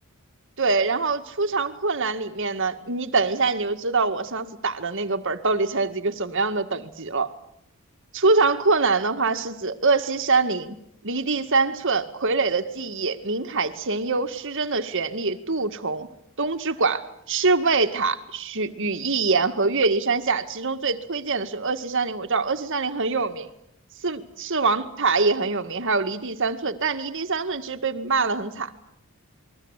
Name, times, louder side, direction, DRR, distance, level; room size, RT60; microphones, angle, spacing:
voice 1, 0.6-7.3 8.1-10.8 11.0-16.1 16.4-23.5 24.0-28.7, right 4 dB, 60° right, 2.1 m, -24 dB
29.0 x 22.0 x 8.3 m
head